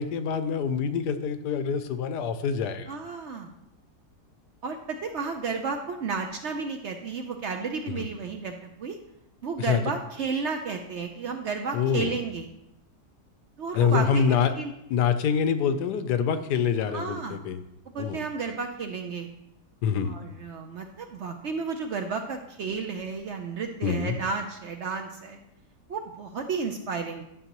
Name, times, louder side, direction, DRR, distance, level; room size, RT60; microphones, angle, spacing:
voice 1, 0.0-2.9 8.0-8.1 9.6-9.8 11.7-12.2 13.7-14.5 14.9-17.6 18.0-18.2 19.8-20.1 23.8-24.2, left 7 dB, 90° left, 11 dB, 1.2 m, -25 dB
voice 2, 2.9-3.5 4.6-9.0 9.4-12.5 13.6-14.7 16.9-17.4 17.9-19.3 20.0-25.4 25.9-27.2, right 4 dB, 65° right, 5 dB, 0.7 m, -32 dB
11.0 x 6.4 x 3.0 m, 0.82 s
omnidirectional pair, 1.7 m